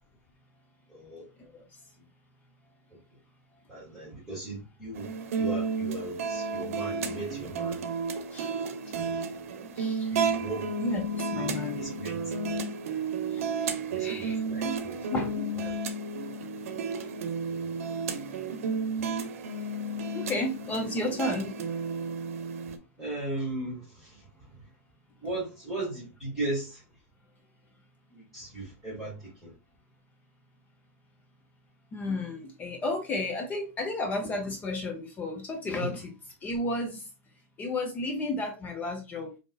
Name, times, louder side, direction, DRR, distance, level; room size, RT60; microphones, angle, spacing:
voice 1, 0.9-1.3 3.7-5.1 5.4-7.8 8.9-9.5 10.1-10.7 11.3-12.2 12.5-12.6 13.9-15.0 15.6-15.8 23.0-24.6 25.2-26.8 28.1-29.5 35.8-35.9, right 2 dB, 5° right, 2.5 m, -37 dB
sound 1, 5.0-22.8, right 4 dB, 75° right, 0.7 m, -32 dB
voice 2, 8.3-8.9 9.8-10.4 10.8-11.9 13.3-14.8 15.1-15.6 20.1-21.5 31.9-36.1 36.4-37.1 37.6-39.3, left 2 dB, 20° left, 0.7 m, -33 dB
5.2 x 2.8 x 2.3 m
supercardioid pair, 145°, 8 cm